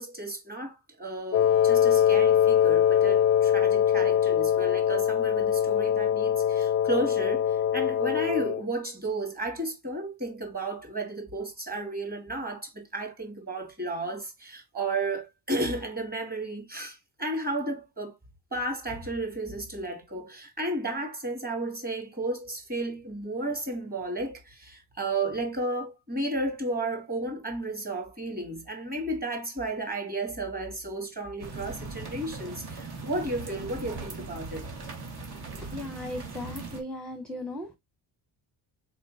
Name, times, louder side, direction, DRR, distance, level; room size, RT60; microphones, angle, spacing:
voice 1, 0.0-18.1 18.5-34.7, right 2 dB, 20° right, 2.5 m, -33 dB
Wind instrument woodwind instrument, 1.3-8.6, left 9 dB, 35° left, 0.4 m, -23 dB
sound 1, 31.4-36.8, right 3 dB, 55° right, 2.0 m, -39 dB
voice 2, 35.5-37.8, left 1 dB, ahead, 0.8 m, -37 dB
4.4 x 4.3 x 2.7 m
cardioid pair, 100°, 45 cm